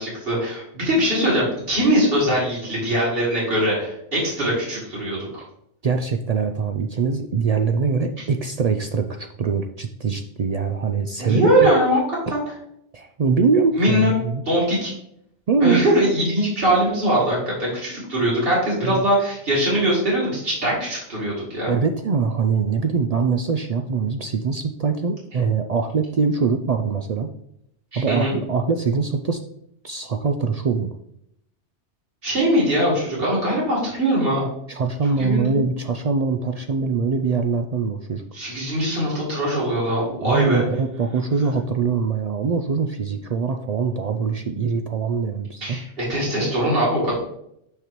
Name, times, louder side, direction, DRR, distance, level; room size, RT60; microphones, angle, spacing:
voice 1, 0.0-5.4 11.2-12.0 12.3-12.4 13.8-14.1 14.4-14.9 15.6-21.7 27.9-28.3 32.2-34.4 35.2-35.6 38.3-40.6 45.6-47.2, equal, 50° right, -6 dB, 2.9 m, -21 dB
voice 2, 5.8-11.7 12.9-14.4 15.5-15.9 18.8-19.1 21.7-27.3 28.0-29.4 29.8-30.9 34.7-38.2 40.2-45.8, right 5 dB, 75° right, 6 dB, 0.3 m, -23 dB
6.6 x 6.5 x 3.1 m, 0.74 s
omnidirectional pair, 1.2 m